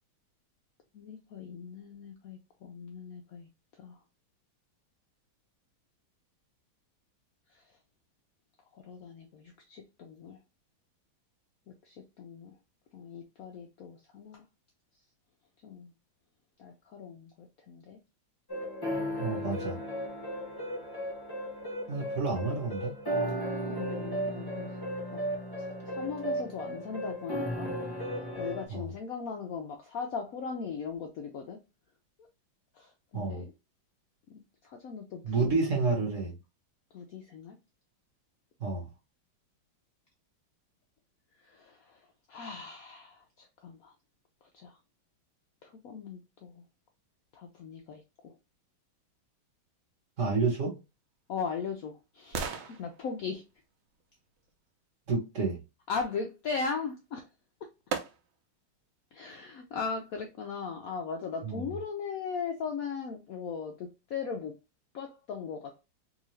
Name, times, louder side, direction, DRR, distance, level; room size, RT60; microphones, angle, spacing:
voice 1, 0.9-3.5 3.8-4.0 7.5-7.6 8.7-10.4 11.7-12.6 12.9-14.4 15.6-15.9 16.6-18.0 23.7-24.7 25.1-25.2 25.6-27.8 28.1-31.6 32.7-33.5 34.3-35.5 36.9-37.6 41.4-43.9 44.5-44.8 45.6-46.6 47.3-48.4 51.3-53.4 55.9-57.3 59.1-64.6 64.9-65.8, left 5 dB, 85° left, 0.7 m, -39 dB
sound 1, 18.5-28.6, equal, 35° left, 0.3 m, -35 dB
voice 2, 19.2-19.8 21.9-23.0 28.7-28.8 33.1-33.4 35.2-36.4 38.6-38.9 50.2-50.7 55.1-55.6 61.4-61.6, right 4 dB, 45° right, 1.3 m, -29 dB
sound 2, 50.8-54.9 57.0-57.1 57.9-58.6 59.1-59.2, right 6 dB, 85° right, 1.5 m, -41 dB
3.7 x 2.7 x 3.1 m
omnidirectional pair, 2.2 m